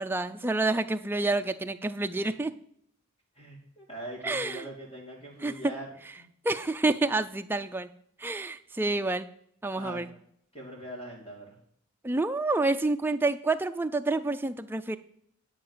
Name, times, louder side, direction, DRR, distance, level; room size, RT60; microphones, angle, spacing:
voice 1, 0.0-2.5 4.2-4.7 5.4-5.5 6.4-7.9 8.2-9.3 9.6-10.1 12.0-15.0, right 2 dB, 10° right, 8 dB, 0.3 m, -28 dB
voice 2, 3.3-5.9 6.2-6.3 9.8-10.0 10.5-11.6, right 1 dB, 25° left, 0 dB, 2.8 m, -42 dB
10.0 x 5.0 x 7.4 m, 0.69 s
head